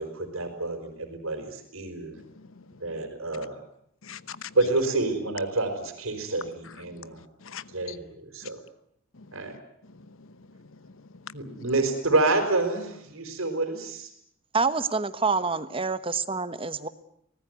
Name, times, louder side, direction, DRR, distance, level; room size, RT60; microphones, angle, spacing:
voice 1, 0.0-2.2 2.8-3.6 4.5-7.2 7.7-8.6 9.3-9.5 11.3-14.1, right 2 dB, 85° right, 6 dB, 4.9 m, -28 dB
voice 2, 2.4-3.0 4.0-4.6 6.9-7.0 7.4-8.0 9.2-9.4 10.0-11.6, left 7 dB, 75° left, 15 dB, 1.0 m, -45 dB
voice 3, 14.5-16.9, right 4 dB, 25° right, 12 dB, 1.1 m, -27 dB
25.0 x 18.5 x 9.4 m, 0.71 s
head